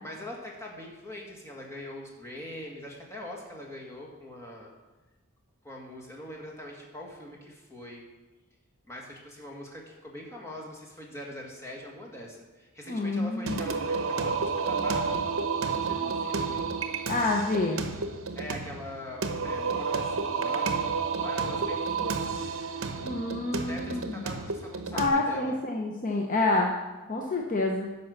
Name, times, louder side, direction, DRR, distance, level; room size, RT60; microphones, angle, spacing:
voice 1, 0.0-4.7 5.6-8.0 8.9-15.3 15.6-16.6 18.4-20.7 21.2-22.3 23.5-25.6, left 1 dB, 15° left, -2 dB, 1.8 m, -42 dB
voice 2, 12.9-13.6 17.1-17.8 23.0-24.2 24.9-26.7 27.1-27.9, left 2 dB, 40° left, 1 dB, 0.8 m, -28 dB
Singing, 13.5-25.1, right 5 dB, 65° right, 0.9 m, -31 dB
10.5 x 5.4 x 6.5 m, 1.1 s
head